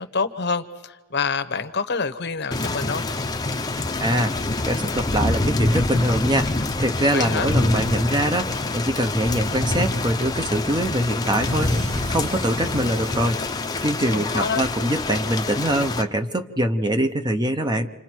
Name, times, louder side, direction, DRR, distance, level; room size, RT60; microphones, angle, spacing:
voice 1, 0.0-3.0 7.1-7.5 14.1-14.6, left 5 dB, 50° left, 10 dB, 1.0 m, -27 dB
Thunder / Rain, 2.5-16.0, left 2 dB, 20° left, 0.7 m, -25 dB
voice 2, 4.0-4.3 4.6-6.5 6.8-13.4 13.8-17.9, right 1 dB, 20° right, 7 dB, 0.8 m, -23 dB
sound 1, 11.2-14.5, right 1 dB, 80° right, 4.0 m, -41 dB
29.0 x 26.5 x 4.6 m, 1.3 s
head